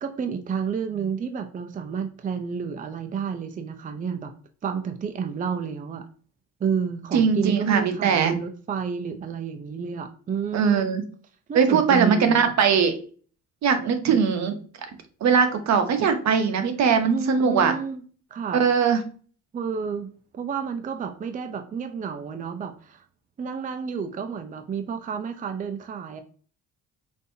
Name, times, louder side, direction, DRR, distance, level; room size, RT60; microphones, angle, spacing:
voice 1, 0.0-4.3 4.6-6.0 6.6-10.9 11.5-12.5 14.0-14.2 17.0-18.0 18.3-18.6 19.5-23.0 23.4-26.2, right 6 dB, 30° right, 7 dB, 0.4 m, -30 dB
voice 2, 7.1-8.3 10.5-11.0 11.5-13.0 13.6-14.5 15.2-17.7 18.5-19.0, right 6 dB, 65° right, 7 dB, 0.8 m, -20 dB
5.2 x 2.7 x 2.7 m, 0.42 s
cardioid pair, 90°, 30 cm